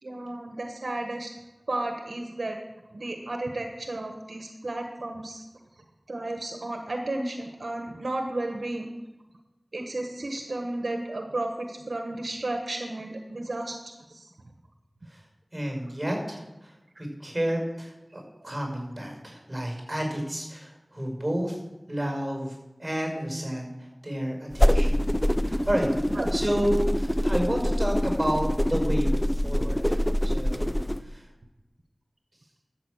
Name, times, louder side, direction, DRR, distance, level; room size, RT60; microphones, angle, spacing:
voice 1, 0.0-1.3 1.7-2.6 2.9-5.4 6.1-8.9 9.7-14.3 18.1-18.2 26.1-26.3, right 2 dB, 80° right, 3 dB, 1.3 m, -33 dB
voice 2, 15.5-16.7 17.0-21.6 21.9-23.7 24.0-25.0 25.4-31.3, equal, 20° right, 1 dB, 5.6 m, -31 dB
sound 1, 24.5-31.0, equal, 10° left, 0.5 m, -24 dB
13.0 x 8.2 x 6.5 m, 1.0 s
wide cardioid pair, 60°, 0 cm